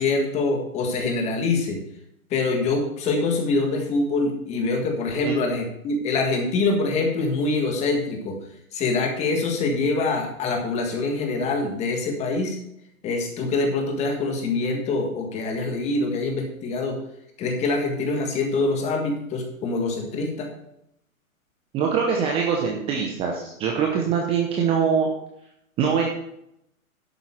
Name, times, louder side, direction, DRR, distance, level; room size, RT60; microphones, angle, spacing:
voice 1, 0.0-1.8 2.3-8.4 8.7-12.6 13.0-17.0 17.4-20.5, left 3 dB, 15° left, 3 dB, 1.6 m, -24 dB
voice 2, 21.7-25.1 25.8-26.1, right 6 dB, 15° right, 0 dB, 0.9 m, -23 dB
11.5 x 8.1 x 4.5 m, 0.78 s
hypercardioid pair, 140°, 43 cm